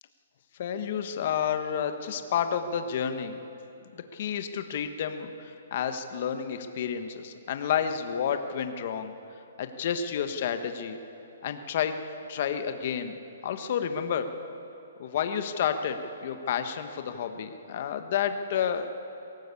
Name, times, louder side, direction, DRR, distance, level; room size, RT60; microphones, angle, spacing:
voice 1, 0.6-3.4 3.8-9.1 9.6-11.0 11.4-12.0 12.3-13.1 13.4-14.3 15.0-18.9, left 8 dB, 40° left, 8 dB, 1.3 m, -30 dB
22.5 x 17.5 x 8.4 m, 2.9 s
hypercardioid pair, 170°, 0 cm